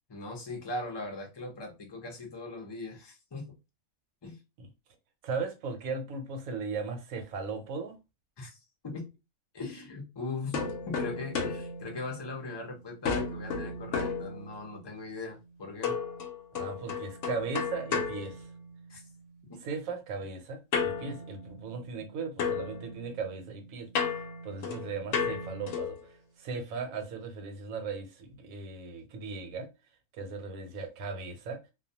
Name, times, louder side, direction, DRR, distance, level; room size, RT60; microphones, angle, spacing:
voice 1, 0.1-3.5 4.2-4.4 8.4-8.6 8.8-9.1 9.5-16.0 18.9-19.0 19.5-19.6 22.0-22.1, left 2 dB, 30° left, 0.4 m, -40 dB
voice 2, 5.2-7.9 16.5-18.5 19.6-23.9 24.1-26.0 26.4-29.7 30.1-31.6, right 4 dB, 85° right, 1.1 m, -37 dB
sound 1, 10.5-12.6 13.0-14.9 15.8-19.1 20.7-22.1 22.4-26.1, left 5 dB, 70° left, 0.9 m, -34 dB
2.3 x 2.2 x 2.7 m
omnidirectional pair, 1.4 m